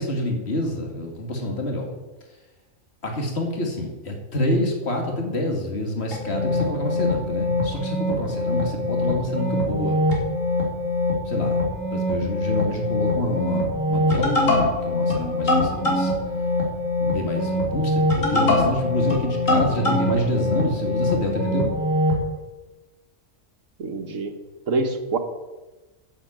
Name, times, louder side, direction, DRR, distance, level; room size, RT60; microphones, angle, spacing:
voice 1, 0.0-1.9 3.0-10.0 11.3-11.6 11.9-14.5 14.9-16.1 17.0-21.7, left 1 dB, 55° left, 2 dB, 2.6 m, -27 dB
sound 1, 6.1-22.2, left 1 dB, 75° left, 4.0 m, -23 dB
voice 2, 23.8-24.3 24.7-25.2, right 3 dB, 75° right, 6 dB, 1.8 m, -25 dB
11.5 x 7.8 x 8.8 m, 1.1 s
omnidirectional pair, 1.4 m